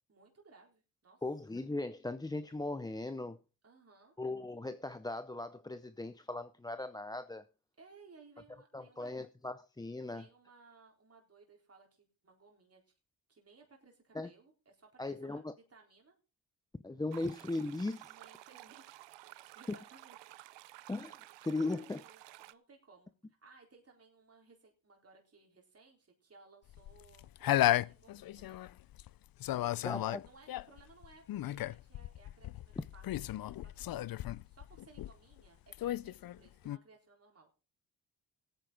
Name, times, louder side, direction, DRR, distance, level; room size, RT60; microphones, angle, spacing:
voice 1, 0.1-1.2 3.6-4.1 7.8-9.2 10.1-12.8 13.3-16.2 18.1-18.9 19.3-20.2 21.5-23.1 23.4-28.6 29.6-37.5, right 4 dB, 35° right, 3.9 m, -61 dB
voice 2, 1.2-3.4 4.2-7.4 8.7-10.3 14.1-14.3 15.0-15.5 16.8-18.1 20.9-22.0 29.8-30.2 32.8-32.9, left 2 dB, 10° left, 0.6 m, -38 dB
sound 1, 17.1-22.5, right 17 dB, 85° right, 0.6 m, -53 dB
sound 2, 26.7-29.1 29.4-35.4 35.7-36.8, left 14 dB, 55° left, 0.5 m, -34 dB
17.0 x 9.2 x 3.8 m
cardioid pair, 70°, 42 cm